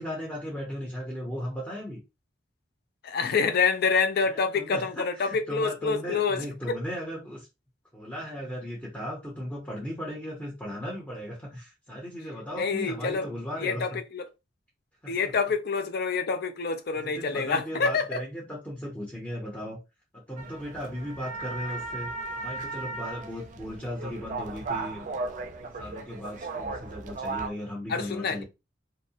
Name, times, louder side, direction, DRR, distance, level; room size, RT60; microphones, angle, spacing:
voice 1, 0.0-2.0 4.3-7.5 7.9-14.0 15.0-15.3 17.0-19.8 20.1-22.1 22.4-25.1 25.8-28.4, equal, 10° left, 0.7 m, -36 dB
voice 2, 3.0-6.8 12.5-13.3 13.6-14.3 15.1-18.2 27.9-28.4, left 5 dB, 55° left, 0.4 m, -27 dB
sound 1, 20.4-27.5, right 3 dB, 45° right, 0.4 m, -36 dB
2.6 x 2.0 x 2.7 m
head